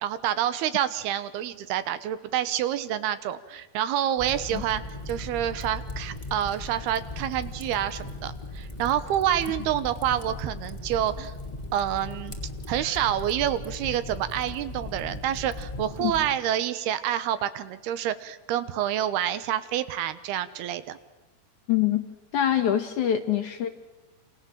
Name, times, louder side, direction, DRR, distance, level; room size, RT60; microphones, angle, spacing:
voice 1, 0.0-11.3 11.7-12.4 12.7-21.0, right 11 dB, 75° right, 13 dB, 3.0 m, -28 dB
Fire, 4.2-16.3, left 2 dB, 10° left, 2.3 m, -38 dB
voice 2, 21.7-22.0 22.3-23.7, left 10 dB, 65° left, 8 dB, 2.1 m, -24 dB
28.0 x 27.5 x 7.4 m, 1.1 s
omnidirectional pair, 4.7 m